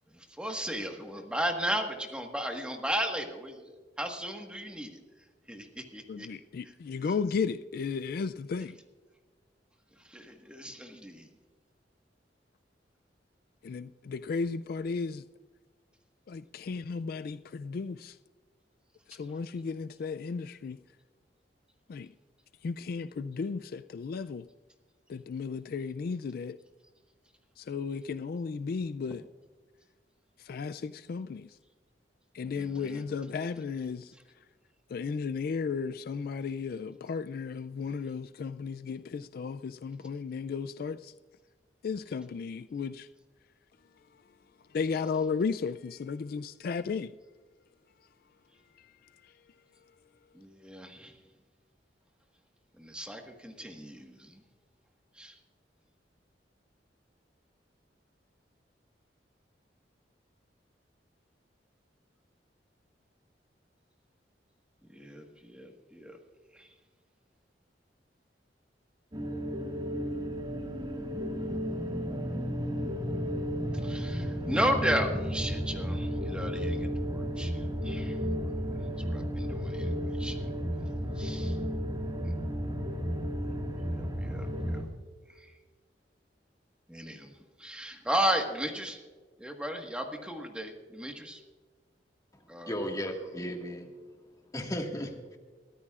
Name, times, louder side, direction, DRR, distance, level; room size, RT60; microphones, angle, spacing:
voice 1, 0.1-5.0 5.5-6.3 6.9-7.1 10.0-11.3 32.4-33.0 50.3-51.1 52.8-54.4 55.1-55.4 64.9-66.2 66.5-66.7 73.7-80.5 81.1-81.6 82.2-82.3 83.7-84.9 85.3-85.6 86.9-87.3 87.6-89.0 89.4-91.4 92.5-92.9, right 1 dB, 5° right, 1.5 m, -35 dB
voice 2, 6.1-8.8 13.6-15.2 16.3-18.2 19.1-20.8 21.9-22.1 22.6-24.5 25.1-26.6 27.6-29.2 30.4-31.6 32.3-34.1 34.9-41.1 41.8-43.1 44.7-47.1 48.8-49.3, left 5 dB, 55° left, 0.3 m, -34 dB
sound 1, 69.1-84.8, equal, 25° right, 1.8 m, -33 dB
voice 3, 92.7-93.9 94.5-95.4, equal, 20° left, 1.8 m, -35 dB
22.5 x 14.0 x 2.4 m
head